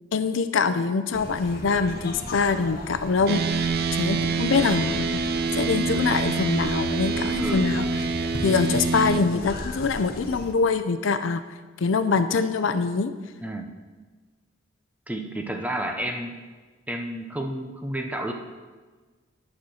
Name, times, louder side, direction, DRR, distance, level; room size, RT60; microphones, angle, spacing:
voice 1, 0.1-3.4 3.9-5.2 5.6-7.8 8.4-11.4 11.8-13.1, left 4 dB, 75° left, 11 dB, 0.5 m, -24 dB
sound 1, 1.1-10.5, left 1 dB, 50° left, 1.0 m, -37 dB
sound 2, 3.3-9.2, right 4 dB, 50° right, 0.5 m, -26 dB
voice 2, 7.4-7.7 13.4-13.7 15.1-16.4 16.9-18.3, right 1 dB, 10° right, 4 dB, 0.7 m, -31 dB
10.5 x 4.3 x 6.2 m, 1.4 s
head